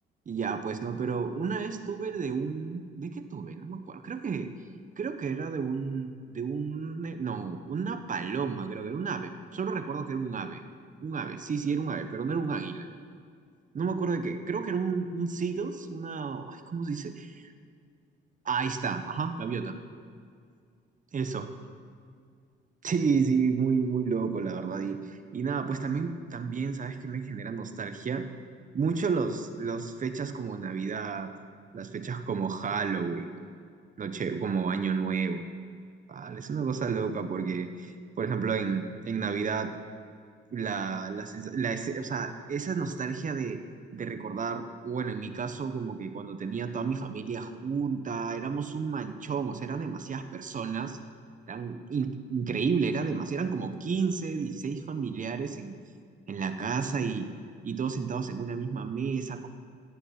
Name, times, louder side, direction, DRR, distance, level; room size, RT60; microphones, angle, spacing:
voice 1, 0.3-4.5 5.0-10.6 11.0-12.9 13.7-17.3 18.4-19.7 21.1-21.5 22.8-28.2 28.7-31.3 31.7-33.3 34.0-35.4 36.1-37.9 38.2-39.7 40.5-43.6 43.9-51.0 51.5-55.7 56.3-57.3 57.6-59.5, right 5 dB, 40° right, 8 dB, 1.0 m, -31 dB
16.0 x 8.0 x 6.0 m, 2.2 s
cardioid pair, 90°, 20 cm